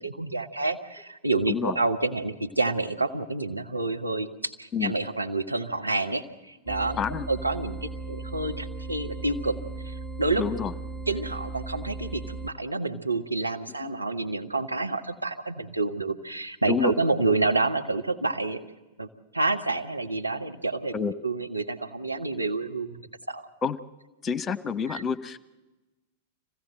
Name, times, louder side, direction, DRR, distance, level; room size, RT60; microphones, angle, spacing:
voice 1, 0.0-7.0 7.3-9.5 9.8-10.4 11.1-18.6 19.0-19.1 19.3-20.9 21.2-23.0 23.3-23.4, right 3 dB, 85° right, 4 dB, 1.4 m, -28 dB
sound 1, 6.7-12.5, right 3 dB, 20° right, 1.3 m, -37 dB
voice 2, 7.0-7.3 10.4-10.7 13.8-13.9 16.7-16.9 20.9-21.1 23.6-23.8 24.2-25.4, left 6 dB, 20° left, 13 dB, 1.1 m, -28 dB
25.5 x 16.5 x 7.7 m, 1.1 s
figure-of-eight pair, 95°, 0 cm